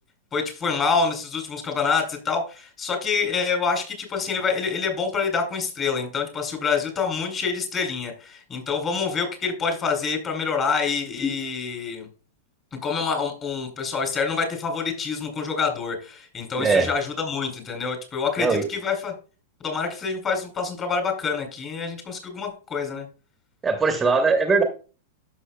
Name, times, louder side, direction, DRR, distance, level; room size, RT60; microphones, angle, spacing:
voice 1, 0.3-12.1 12.8-19.1 19.6-23.1, left 5 dB, 30° left, 4 dB, 3.0 m, -26 dB
voice 2, 16.6-16.9 18.4-18.7 23.6-24.6, right 4 dB, 15° right, 6 dB, 1.0 m, -20 dB
12.0 x 6.2 x 2.2 m, 0.35 s
hypercardioid pair, 110°, 0 cm